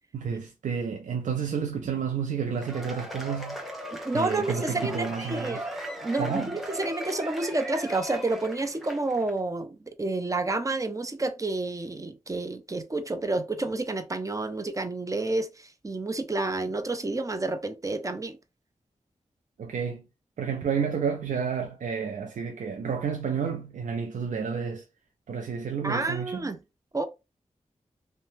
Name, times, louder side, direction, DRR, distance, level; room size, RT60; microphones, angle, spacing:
voice 1, 0.1-3.6 4.1-5.6 6.2-6.5 19.6-20.0 20.4-24.8 25.3-26.5, right 6 dB, 85° right, 0.4 m, -30 dB
Cheering / Applause / Crowd, 2.5-9.3, right 1 dB, ahead, 1.0 m, -38 dB
voice 2, 3.9-5.6 6.0-18.4 25.8-26.6 26.9-27.0, right 2 dB, 25° right, 0.5 m, -30 dB
2.7 x 2.1 x 3.1 m
cardioid pair, 45°, 13 cm